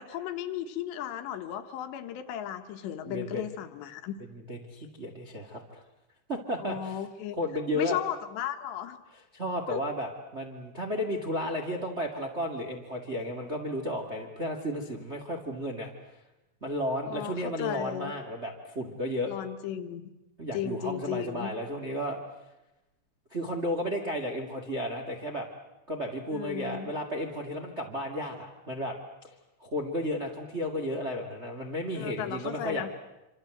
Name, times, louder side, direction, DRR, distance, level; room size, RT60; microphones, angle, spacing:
voice 1, 0.0-4.1 6.6-7.4 7.7-9.0 9.7-9.8 17.1-18.1 19.3-20.0 20.5-21.5 26.3-26.9 32.0-32.9, left 10 dB, 75° left, 7 dB, 3.3 m, -35 dB
voice 2, 3.0-3.4 4.3-5.8 6.3-7.0 7.3-8.0 9.3-15.9 16.6-19.3 20.4-22.2 23.3-25.5 25.9-29.0 29.6-32.9, equal, 40° right, 2 dB, 0.9 m, -33 dB
26.5 x 26.0 x 7.9 m, 0.97 s
omnidirectional pair, 5.3 m